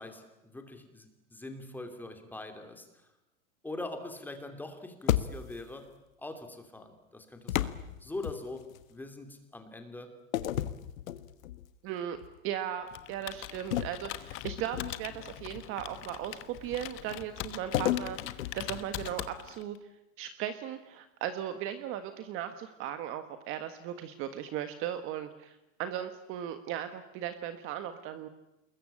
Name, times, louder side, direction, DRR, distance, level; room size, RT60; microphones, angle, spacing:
voice 1, 0.0-2.9 3.6-5.9 6.2-10.1, left 2 dB, 5° left, 5 dB, 2.9 m, -43 dB
sound 1, 5.1-5.7 7.5-8.8 10.3-11.7 12.1-12.4 13.7-15.2 17.7-19.4, left 12 dB, 85° left, 1.6 m, -33 dB
voice 2, 11.8-12.2 12.4-19.8 20.2-28.3, right 10 dB, 30° right, 9 dB, 1.5 m, -37 dB
Computer keyboard, 12.9-19.8, left 16 dB, 30° left, 1.2 m, -42 dB
27.5 x 21.5 x 8.7 m, 0.90 s
supercardioid pair, 160°, 40 cm